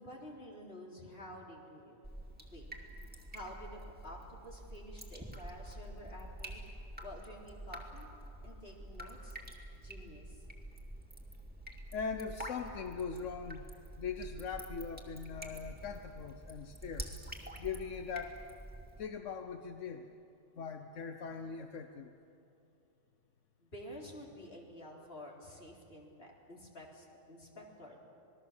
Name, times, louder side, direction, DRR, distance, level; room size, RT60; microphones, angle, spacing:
voice 1, 0.0-2.0 2.5-2.7 3.3-6.6 7.0-8.1 8.4-9.4 9.8-10.4 23.6-28.0, equal, 55° left, -1 dB, 3.8 m, -50 dB
Drip, 2.0-19.0, right 1 dB, 5° right, 2.5 m, -47 dB
voice 2, 11.9-13.7 14.0-17.1 17.6-18.4 19.0-20.1 20.5-22.1, left 5 dB, 85° left, 6 dB, 1.3 m, -41 dB
27.0 x 20.0 x 7.3 m, 2.8 s
omnidirectional pair, 1.2 m